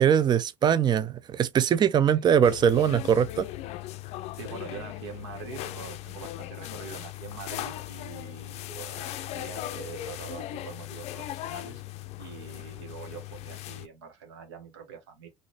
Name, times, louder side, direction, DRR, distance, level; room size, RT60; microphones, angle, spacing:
voice 1, 0.0-3.5, right 8 dB, 30° right, 0.5 m, -22 dB
sound 1, 2.4-13.9, left 14 dB, 50° left, 0.4 m, -38 dB
voice 2, 4.3-11.8 12.2-15.3, right 6 dB, 70° right, 1.2 m, -44 dB
3.8 x 2.6 x 3.1 m
hypercardioid pair, 65°, 14 cm